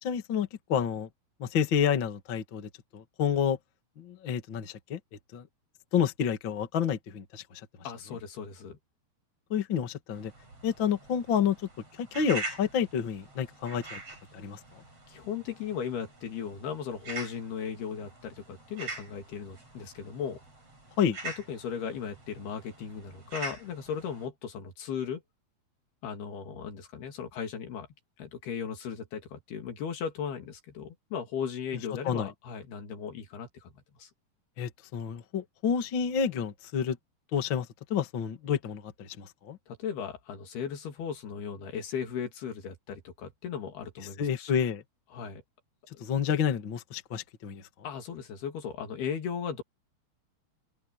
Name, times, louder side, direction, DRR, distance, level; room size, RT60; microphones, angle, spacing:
voice 1, 0.0-1.1 1.4-3.6 4.0-5.0 5.3-5.5 5.9-7.4 9.5-10.3 10.6-11.6 12.0-14.0 14.3-14.6 21.0-21.2 32.0-32.3 34.6-37.0 37.3-39.6 44.2-44.8 46.0-47.6, left 8 dB, 40° left, 1.9 m, -29 dB
voice 2, 7.8-8.8 15.1-20.4 21.2-25.2 26.0-27.9 28.2-34.1 39.7-44.5 45.1-45.4 47.8-49.6, left 7 dB, 75° left, 4.7 m, -37 dB
sound 1, 10.1-24.3, right 3 dB, 35° right, 8.6 m, -44 dB
open air
omnidirectional pair, 4.6 m